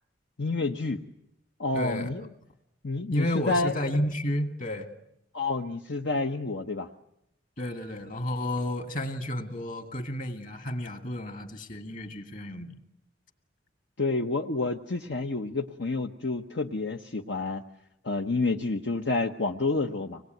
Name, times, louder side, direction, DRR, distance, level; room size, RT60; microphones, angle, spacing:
voice 1, 0.4-1.0 1.6-2.2 2.8-3.7 5.3-6.9 14.0-17.6 18.0-20.2, left 3 dB, 70° left, 4 dB, 1.0 m, -29 dB
voice 2, 1.7-2.1 3.1-4.9 7.6-12.8, left 1 dB, 45° left, 7 dB, 2.4 m, -32 dB
25.5 x 20.5 x 9.3 m, 0.82 s
head